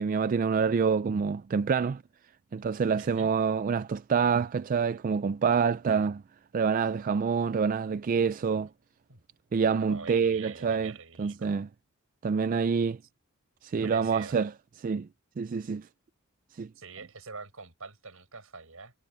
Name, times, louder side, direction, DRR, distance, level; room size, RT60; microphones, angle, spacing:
voice 1, 0.0-2.0 2.5-6.2 6.5-8.7 9.5-10.9 11.2-11.7 12.2-13.0 13.6-14.5 14.8-15.1 15.4-15.9 16.6-16.7, right 6 dB, 40° right, 0.3 m, -27 dB
voice 2, 2.9-3.3 9.1-9.2 9.7-11.6 13.8-14.4 16.7-18.9, right 4 dB, 70° right, 6.3 m, -45 dB
head